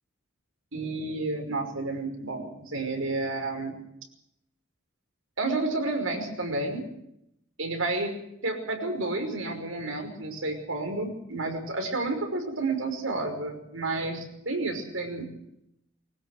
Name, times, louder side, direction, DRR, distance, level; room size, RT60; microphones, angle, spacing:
voice 1, 0.7-3.8 5.4-6.9 7.6-8.1 8.4-15.3, right 2 dB, 90° right, 4 dB, 5.6 m, -30 dB
22.5 x 19.5 x 6.4 m, 0.79 s
head